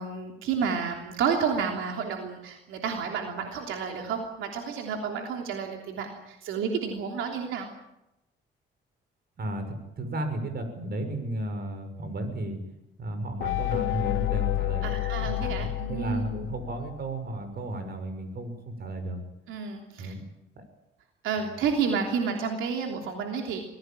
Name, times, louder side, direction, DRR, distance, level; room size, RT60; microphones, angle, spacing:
voice 1, 0.0-7.7 14.8-16.2 19.5-20.1 21.2-23.6, right 6 dB, 90° right, 2 dB, 3.2 m, -30 dB
voice 2, 9.4-12.7 13.0-19.2 20.0-20.2 20.6-20.7 21.4-21.6, right 1 dB, 55° right, 8 dB, 6.2 m, -34 dB
sound 1, 13.4-17.2, left 17 dB, 85° left, 0.8 m, -30 dB
24.0 x 17.0 x 9.0 m, 0.90 s
cardioid pair, 90°, 20 cm